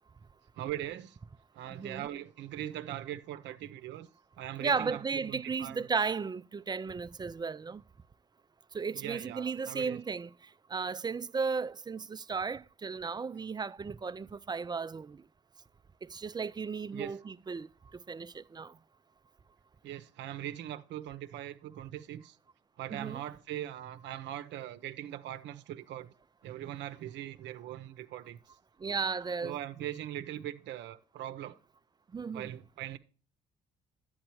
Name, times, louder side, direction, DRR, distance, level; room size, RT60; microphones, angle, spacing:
voice 1, 0.6-1.2 1.5-4.1 4.4-5.9 8.9-10.0 16.9-17.2 19.8-22.4 22.8-26.1 26.4-28.4 29.4-31.6 32.3-33.0, right 12 dB, 75° right, 0.7 m, -41 dB
voice 2, 1.7-2.1 4.6-7.8 8.7-10.3 10.7-15.2 16.1-17.7 18.1-18.7 22.9-23.2 28.8-29.6 32.1-32.5, right 5 dB, 20° right, 0.4 m, -35 dB
10.0 x 8.9 x 3.0 m
supercardioid pair, 70°, 19 cm